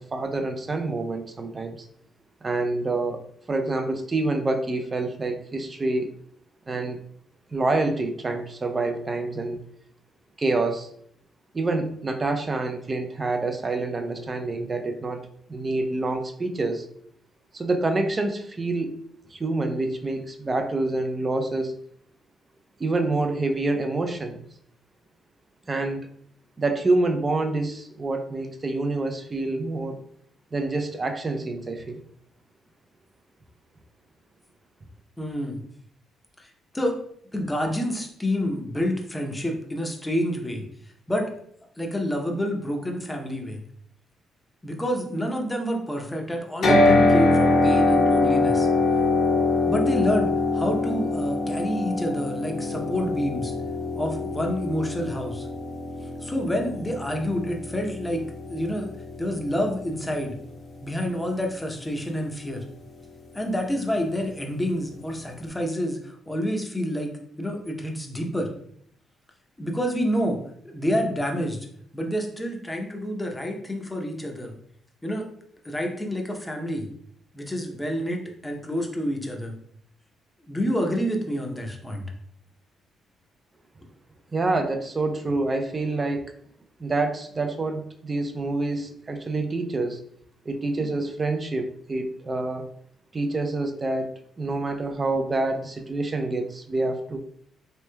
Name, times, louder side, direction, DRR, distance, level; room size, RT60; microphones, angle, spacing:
voice 1, 0.0-1.9 2.4-6.1 6.7-7.0 7.5-9.6 10.4-10.9 11.5-15.2 15.5-16.9 17.5-19.0 19.3-21.7 22.8-24.4 25.7-26.1 26.6-30.0 30.5-32.0 84.3-86.3 86.8-90.0 90.5-92.7 93.1-97.2, right 2 dB, 30° right, 5 dB, 0.4 m, -27 dB
voice 2, 35.2-35.6 36.4-37.0 37.3-40.6 41.1-41.3 41.8-43.6 44.6-48.7 49.7-53.5 54.0-55.5 56.2-58.2 58.5-58.9 59.2-60.4 60.8-62.6 63.3-67.1 67.4-68.5 69.6-70.4 70.6-71.6 71.9-74.6 75.0-75.3 75.6-76.9 77.3-79.5 80.5-82.1, equal, 10° left, 2 dB, 0.7 m, -28 dB
sound 1, 46.6-60.7, left 2 dB, 65° left, 0.8 m, -24 dB
3.1 x 3.1 x 2.2 m, 0.65 s
cardioid pair, 90°, 0 cm